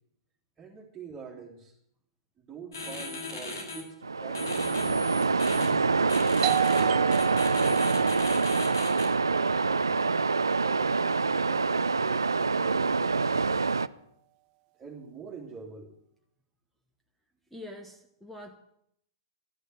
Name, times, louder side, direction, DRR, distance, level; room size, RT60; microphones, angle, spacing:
voice 1, 0.6-1.7 2.4-4.7 14.8-15.9, right 5 dB, 20° right, -3 dB, 2.7 m, -45 dB
sound 1, 2.7-3.8 4.3-5.7 6.1-6.8 7.1-9.1, left 3 dB, 70° left, 6.6 m, -38 dB
Waves surf, 4.0-13.9, right 4 dB, 80° right, 0.5 m, -25 dB
Doorbell, 6.4-11.8, right 18 dB, 35° right, 0.9 m, -36 dB
voice 2, 17.5-18.6, left 1 dB, ahead, 4 dB, 1.3 m, -44 dB
13.0 x 9.8 x 9.3 m, 0.73 s
figure-of-eight pair, 110°, 2 cm